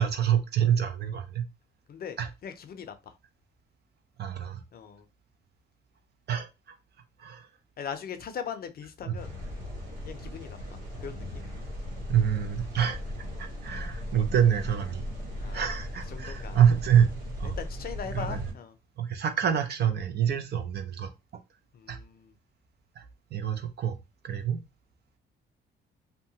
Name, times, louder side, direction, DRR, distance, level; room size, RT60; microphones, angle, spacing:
voice 1, 0.0-1.4 2.2-2.3 4.2-4.6 6.3-6.5 7.2-7.5 9.0-9.2 12.1-13.0 13.4-15.0 15.5-17.1 17.4-17.5 18.1-18.4 19.0-21.1 21.9-22.0 23.0-23.1 23.3-24.0 24.2-24.6, right 9 dB, 55° right, 0.6 m, -26 dB
voice 2, 2.4-3.1 4.7-5.1 7.8-9.3 10.0-10.6 11.0-11.2 15.4-15.8 16.1-16.6 17.6-18.8 21.7-22.3 24.3-24.5, left 7 dB, 50° left, 0.5 m, -39 dB
sound 1, 9.2-18.5, equal, 90° right, 1.3 m, -37 dB
2.8 x 2.2 x 2.7 m
cardioid pair, 90°, 20 cm